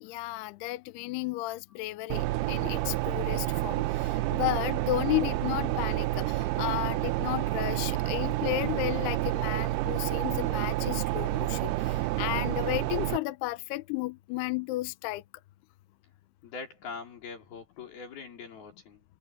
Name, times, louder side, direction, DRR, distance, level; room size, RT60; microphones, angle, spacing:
voice 1, 0.0-15.2, left 19 dB, 80° left, 2.4 m, -33 dB
sound 1, 2.1-13.2, right 17 dB, 85° right, 2.3 m, -29 dB
voice 2, 16.4-19.0, left 5 dB, 55° left, 5.9 m, -42 dB
omnidirectional pair, 5.3 m